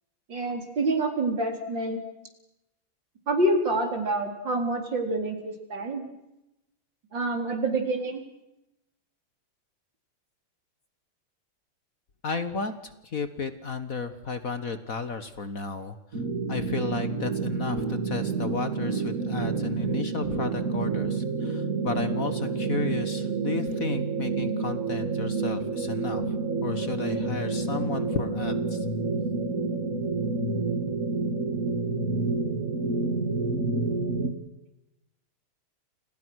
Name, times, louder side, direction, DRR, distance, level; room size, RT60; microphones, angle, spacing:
voice 1, 0.3-2.0 3.3-6.0 7.1-8.2, right 2 dB, 55° right, 4 dB, 4.8 m, -27 dB
voice 2, 12.2-16.2 16.5-26.3 26.6-28.8, left 5 dB, 45° left, 11 dB, 1.7 m, -33 dB
sound 1, 16.1-34.3, right 4 dB, 40° right, 3.2 m, -29 dB
30.0 x 27.0 x 6.4 m, 0.90 s
omnidirectional pair, 2.4 m